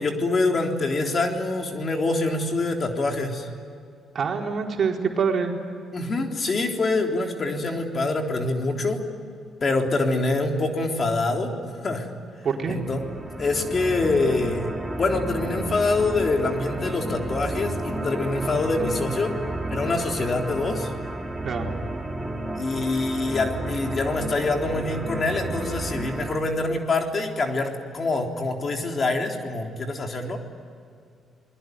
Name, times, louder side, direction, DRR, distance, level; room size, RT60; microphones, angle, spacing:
voice 1, 0.0-3.5 5.9-9.0 9.6-12.1 12.7-13.0 13.4-19.3 19.7-20.9 22.6-30.4, left 3 dB, 40° left, 2 dB, 3.7 m, -25 dB
voice 2, 4.1-5.5 12.4-12.8 21.4-21.8, right 6 dB, 50° right, 1 dB, 4.4 m, -25 dB
sound 1, 12.6-26.4, right 1 dB, 10° right, 4.1 m, -32 dB
28.5 x 21.5 x 9.4 m, 2.4 s
cardioid pair, 90°, 0 cm